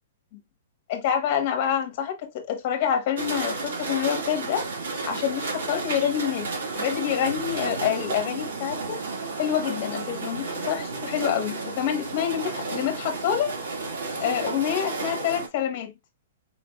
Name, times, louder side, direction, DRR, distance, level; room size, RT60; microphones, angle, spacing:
voice 1, 0.9-4.7 5.1-6.5 6.7-9.0 9.4-13.5 14.2-15.9, left 9 dB, 30° left, 1.2 m, -27 dB
sound 1, 3.2-15.5, right 3 dB, 70° right, 2.0 m, -32 dB
4.7 x 4.5 x 2.3 m
hypercardioid pair, 180°, 0 cm